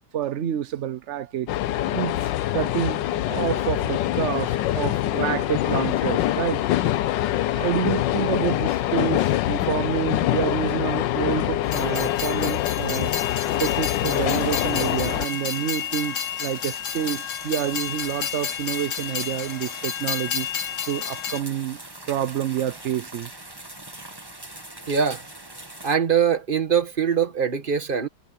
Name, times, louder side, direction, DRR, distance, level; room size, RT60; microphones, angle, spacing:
voice 1, 0.1-1.5 1.9-3.0 3.3-6.6 6.9-7.1 7.5-13.1 13.6-21.8 22.1-23.3, right 9 dB, 85° right, 0.6 m, -28 dB
sound 1, 1.5-15.3, left 13 dB, 75° left, 1.3 m, -24 dB
Train, 11.6-21.4, left 9 dB, 50° left, 1.0 m, -31 dB
sound 2, 13.1-26.0, right 1 dB, 10° right, 1.7 m, -42 dB
voice 2, 24.9-25.2 25.8-28.1, right 7 dB, 30° right, 1.5 m, -22 dB
omnidirectional pair, 2.1 m